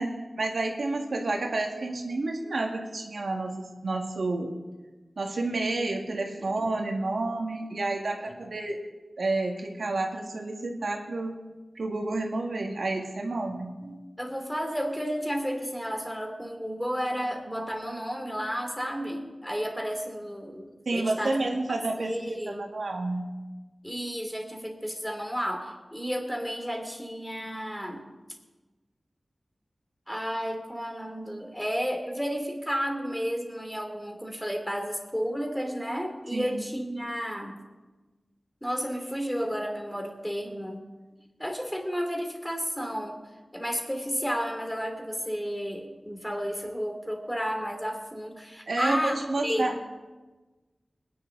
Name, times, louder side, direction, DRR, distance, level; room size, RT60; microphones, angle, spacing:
voice 1, 0.0-4.5 5.2-8.8 9.2-11.4 11.8-13.7 20.9-23.3 36.3-36.7 48.7-49.7, right 2 dB, 85° right, 1 dB, 1.9 m, -30 dB
voice 2, 6.4-6.7 13.5-21.4 22.0-22.6 23.8-28.1 30.1-37.5 38.6-40.8 41.4-43.2 43.5-49.8, equal, 5° left, 3 dB, 2.9 m, -32 dB
21.5 x 10.5 x 3.9 m, 1.2 s
wide cardioid pair, 55°, 0 cm